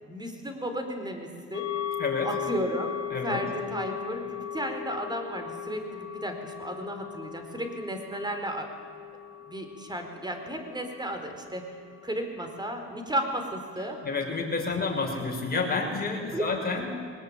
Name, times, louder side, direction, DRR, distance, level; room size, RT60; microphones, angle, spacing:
voice 1, 0.0-1.7 2.2-2.9 3.2-8.7 9.5-11.6 12.0-14.0 15.1-15.2 16.3-16.9, right 1 dB, 15° right, 5 dB, 4.3 m, -34 dB
sound 1, 1.5-13.2 13.6-13.7, left 10 dB, 85° left, 2.2 m, -38 dB
voice 2, 2.0-2.3 3.1-3.4 14.0-16.9, left 4 dB, 30° left, 0 dB, 6.0 m, -29 dB
22.0 x 19.5 x 8.9 m, 2.3 s
cardioid pair, 90°, 30 cm